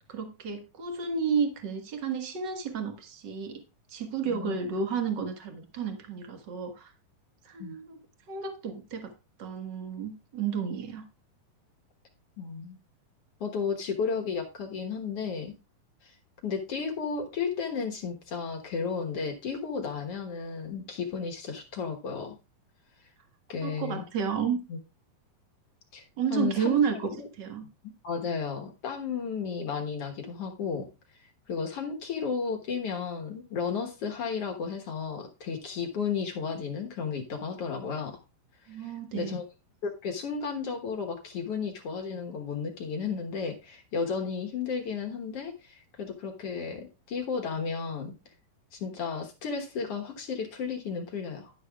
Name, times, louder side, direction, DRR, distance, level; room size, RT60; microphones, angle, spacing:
voice 1, 0.1-3.6 3.9-6.9 7.4-8.0 8.3-9.1 9.4-11.0 23.6-24.6 26.2-27.1 27.4-27.6 38.7-39.4, right 6 dB, 55° right, 5 dB, 1.2 m, -31 dB
voice 2, 12.4-12.8 13.4-15.5 16.0-16.1 16.4-22.3 23.5-24.0 24.7-24.8 25.9-26.0 26.3-26.8 27.2-27.3 28.0-30.9 31.5-38.2 38.8-39.5 39.8-48.1 48.7-51.5, left 5 dB, 60° left, 3 dB, 1.7 m, -33 dB
11.5 x 11.0 x 2.3 m, 0.28 s
omnidirectional pair, 4.2 m